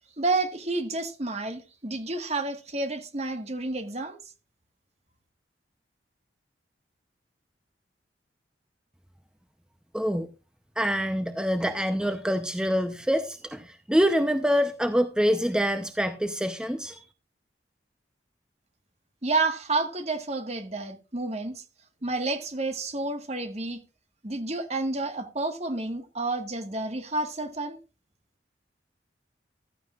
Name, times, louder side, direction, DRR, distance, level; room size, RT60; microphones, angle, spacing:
voice 1, 0.2-4.2 19.2-21.6 22.0-23.8 24.2-27.8, right 3 dB, 35° right, 1.5 m, -30 dB
voice 2, 9.9-10.3 10.8-17.0, equal, 5° right, 0.6 m, -25 dB
14.5 x 13.0 x 2.4 m
head